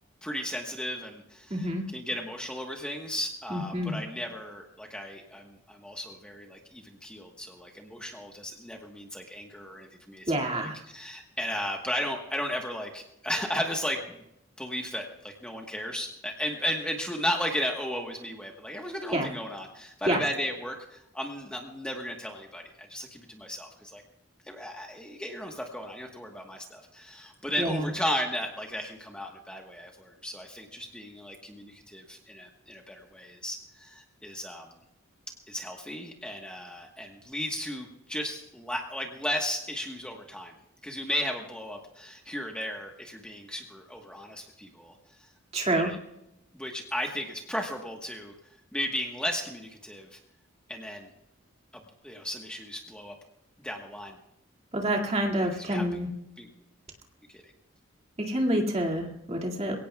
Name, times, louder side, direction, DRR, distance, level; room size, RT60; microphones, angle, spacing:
voice 1, 0.2-14.2 14.6-24.0 24.5-34.7 35.5-40.5 40.8-44.9 45.7-46.0 46.5-48.3 48.7-50.2 50.7-51.1 52.0-53.1 53.6-54.2 55.6-55.9 56.4-56.5 57.3-57.4, equal, 5° left, 1 dB, 1.2 m, -35 dB
voice 2, 1.5-1.8 3.5-4.0 10.3-10.8 19.1-19.3 20.1-20.2 27.6-27.9 45.5-45.9 54.7-56.1 58.2-59.8, right 1 dB, 30° right, 2 dB, 2.2 m, -27 dB
23.0 x 17.5 x 2.3 m, 0.86 s
head